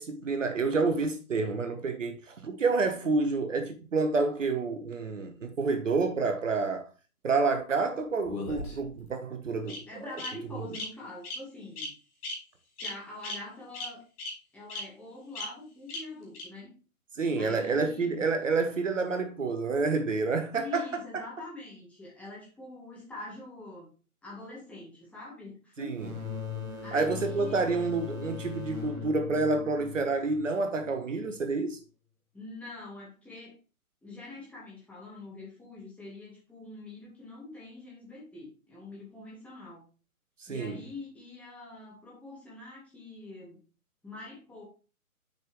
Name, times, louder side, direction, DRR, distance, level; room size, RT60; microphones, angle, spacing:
voice 1, 0.0-6.9 7.2-9.8 17.1-21.0 25.8-26.1 26.9-31.8 40.4-40.8, right 3 dB, 60° right, 1.1 m, -29 dB
Bird vocalization bird call bird song, 8.3-9.0 9.7-9.8 10.2-10.3 10.7-10.8 11.2-11.4 11.8-11.9 12.2-12.3 12.8-12.9 13.2-13.3 13.7-13.8 14.2-14.3 14.7-14.8 15.4-15.5 15.9-16.0 16.3-16.4, left 4 dB, 25° left, 2.0 m, -37 dB
voice 2, 9.9-11.9 12.8-14.0 14.5-16.7 17.4-18.1 20.5-23.9 24.2-26.0 26.8-27.6 32.3-33.6 34.0-39.8 40.5-43.6 44.0-44.7, left 2 dB, 5° left, 1.8 m, -44 dB
sound 1, 25.9-31.4, left 6 dB, 75° right, 1.7 m, -40 dB
6.5 x 5.2 x 3.4 m
figure-of-eight pair, 135°, 44 cm